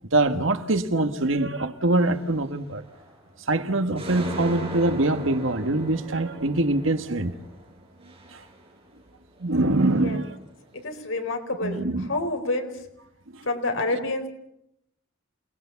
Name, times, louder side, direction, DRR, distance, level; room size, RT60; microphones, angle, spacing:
voice 1, 0.1-2.8 3.5-7.3 8.3-8.4 9.4-10.3 11.6-12.1, right 2 dB, 85° right, 1.7 m, -24 dB
sound 1, 1.9-2.3 2.8-3.4 3.7-9.1 9.4-10.5, equal, 30° right, 5.6 m, -39 dB
voice 2, 9.9-10.2 10.7-12.7 13.4-14.3, left 2 dB, 85° left, 4.1 m, -28 dB
28.0 x 19.5 x 7.1 m
head